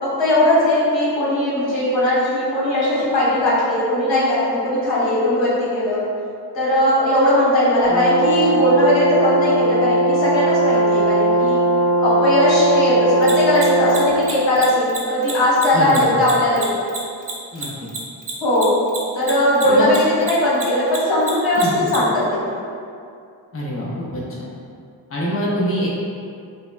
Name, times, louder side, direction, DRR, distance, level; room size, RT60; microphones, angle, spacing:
voice 1, 0.0-6.0 6.5-11.6 12.0-16.7 18.4-18.7 19.1-22.6, left 1 dB, 80° left, -8 dB, 1.2 m, -18 dB
Brass instrument, 7.9-14.2, right 1 dB, 5° right, 0.7 m, -18 dB
Mechanisms, 13.2-20.0 20.2-22.0, right 5 dB, 45° right, 0.7 m, -29 dB
voice 2, 15.7-16.1 17.5-17.7 19.6-19.9 21.6-21.9 23.5-24.4 25.1-26.0, equal, 30° left, -5 dB, 0.7 m, -24 dB
4.9 x 2.2 x 2.2 m, 2.4 s
cardioid pair, 55°, 45 cm